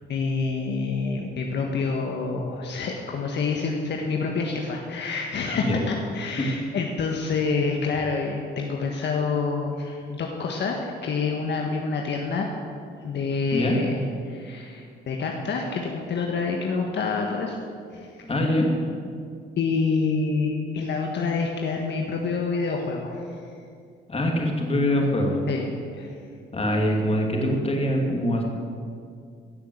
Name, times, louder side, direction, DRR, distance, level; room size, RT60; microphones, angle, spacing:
voice 1, 0.1-12.5 13.0-17.6 17.9-18.2 19.6-23.2 25.5-25.6 26.0-26.1, left 4 dB, 60° left, 1 dB, 1.5 m, -27 dB
voice 2, 18.3-18.7 24.1-25.4 26.5-28.4, left 1 dB, 30° left, 0 dB, 2.7 m, -23 dB
16.0 x 6.6 x 7.9 m, 2.3 s
cardioid pair, 90°, 20 cm